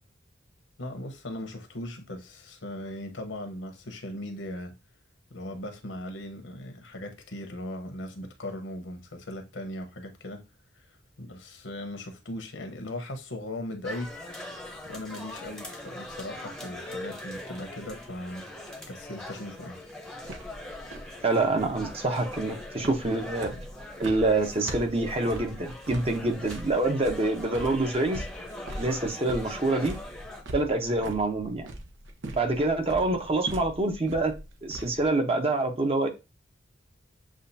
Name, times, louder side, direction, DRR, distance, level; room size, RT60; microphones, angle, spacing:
voice 1, 0.8-4.8 5.3-10.5 10.7-10.8 11.2-14.1 14.8-18.5 18.9-19.8, left 1 dB, 80° left, 1.0 m, -38 dB
sound 1, 13.8-30.4, left 1 dB, 5° left, 0.8 m, -42 dB
sound 2, 20.2-35.1, right 1 dB, 85° right, 0.8 m, -41 dB
voice 2, 21.2-23.7 24.0-28.2 28.8-29.9 30.5-31.7 32.3-34.3 34.6-36.1, right 2 dB, 30° right, 0.8 m, -26 dB
7.3 x 2.4 x 2.7 m
head